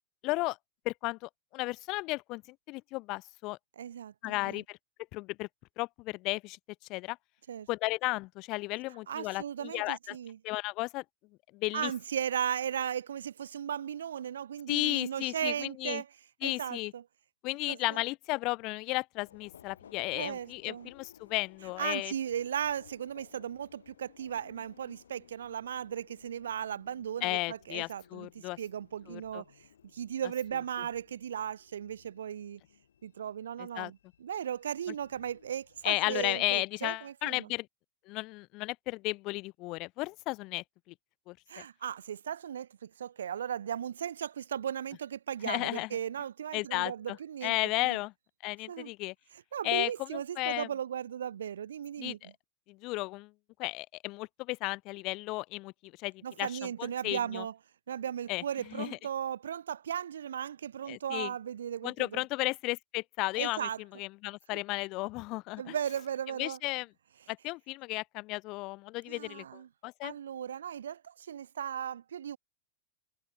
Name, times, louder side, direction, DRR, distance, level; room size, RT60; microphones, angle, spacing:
voice 1, 0.2-0.6 0.9-2.4 2.7-3.6 4.2-4.8 5.1-5.5 5.8-6.6 6.9-7.2 7.7-10.2 10.4-11.0 11.5-11.9 14.7-16.0 16.4-16.9 17.4-22.1 27.2-28.6 29.1-29.4 33.8-33.9 35.8-37.7 38.1-40.9 41.3-41.4 45.4-45.9 46.5-47.2 47.4-48.1 48.4-49.1 49.6-50.7 52.0-52.2 52.7-53.3 53.6-56.5 56.8-57.4 58.3-58.4 58.7-58.9 60.9-61.3 61.8-63.7 64.0-65.7 66.4-66.9 67.3-70.1, left 22 dB, 50° left, 0.4 m, -34 dB
voice 2, 3.8-4.1 4.4-4.6 7.5-7.7 9.1-10.4 11.7-16.1 16.4-17.0 17.7-18.0 20.1-20.9 21.8-29.4 29.9-32.6 33.0-37.5 41.5-48.0 48.7-48.9 49.3-52.3 56.2-57.6 57.9-62.2 63.4-63.8 64.5-64.6 65.6-66.6 69.1-69.7 70.0-72.4, right 9 dB, 80° right, 0.4 m, -36 dB
Subway metro underground, 19.2-36.4, left 8 dB, 80° left, 4.2 m, -60 dB
hypercardioid pair, 95°, 0 cm